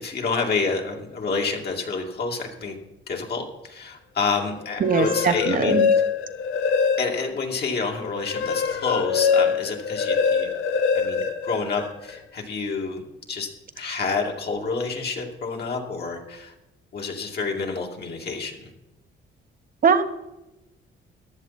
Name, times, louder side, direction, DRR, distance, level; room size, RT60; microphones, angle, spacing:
voice 1, 0.0-2.8 3.1-5.8 7.0-10.5 10.9-13.0 13.3-13.5 13.8-16.5 16.9-18.7, left 4 dB, 55° left, 1 dB, 2.5 m, -28 dB
sound 1, 4.7-7.4 7.8-12.2, left 6 dB, 85° left, 1.0 m, -24 dB
voice 2, 4.8-5.9 19.8-20.0, right 5 dB, 45° right, 10 dB, 1.2 m, -21 dB
14.5 x 10.5 x 4.2 m, 0.95 s
cardioid pair, 90°, 20 cm